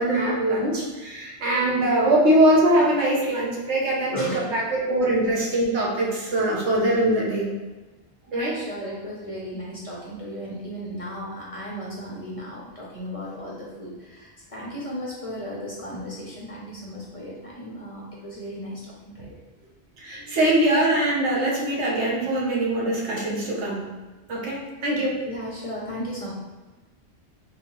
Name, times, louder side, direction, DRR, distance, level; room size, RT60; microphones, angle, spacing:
voice 1, 0.0-7.5 8.3-8.5 20.0-23.8 24.3-25.1, right 1 dB, 80° right, -4 dB, 1.1 m, -22 dB
voice 2, 4.1-4.6 8.3-19.4 25.2-26.3, equal, 40° left, -5 dB, 0.6 m, -35 dB
3.2 x 2.7 x 2.9 m, 1.2 s
omnidirectional pair, 1.1 m